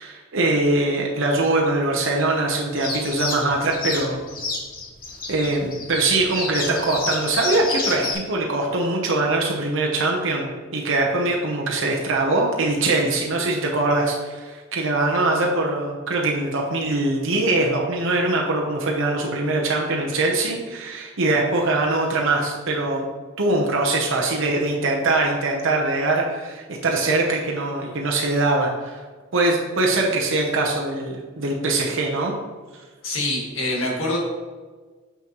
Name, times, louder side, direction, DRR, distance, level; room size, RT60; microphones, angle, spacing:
voice 1, 0.0-4.2 5.3-23.1 23.4-29.0 29.3-32.3, right 2 dB, 65° right, -1 dB, 0.9 m, -22 dB
sound 1, 2.8-8.1, left 3 dB, 45° left, 1.2 m, -29 dB
voice 2, 33.0-34.2, left 1 dB, 70° left, -2 dB, 1.8 m, -25 dB
7.0 x 5.9 x 3.1 m, 1.4 s
head